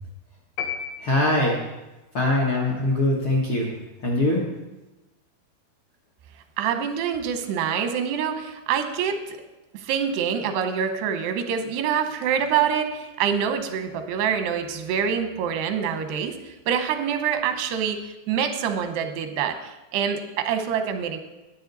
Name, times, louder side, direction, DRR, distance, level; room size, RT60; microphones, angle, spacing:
sound 1, 0.6-1.8, left 7 dB, 90° left, 3.1 m, -33 dB
voice 1, 1.0-1.6 2.1-3.7 4.0-4.4, left 1 dB, 70° left, -3 dB, 1.2 m, -22 dB
voice 2, 6.6-9.4 9.7-16.4 16.7-21.2, right 7 dB, 90° right, 7 dB, 3.0 m, -26 dB
12.5 x 9.9 x 4.0 m, 1.1 s
omnidirectional pair, 4.6 m